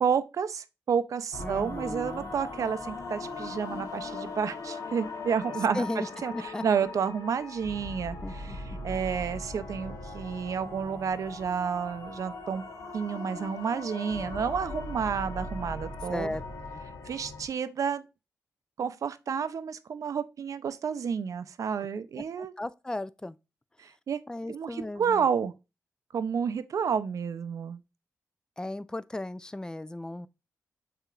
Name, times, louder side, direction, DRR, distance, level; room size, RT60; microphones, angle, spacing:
voice 1, 0.0-5.9 6.2-12.6 12.9-16.3 17.0-18.1 18.8-22.5 23.8-24.2 24.5-25.5 26.1-27.8, right 7 dB, 65° right, 0.5 m, -30 dB
sound 1, 1.3-17.5, left 3 dB, 70° left, 0.9 m, -39 dB
voice 2, 1.4-2.3 5.7-6.1 6.3-6.6 8.2-8.6 16.1-16.4 22.2-23.4 24.3-25.2 28.6-30.3, left 1 dB, 10° left, 0.3 m, -36 dB
6.6 x 2.9 x 2.4 m
cardioid pair, 60°, 6 cm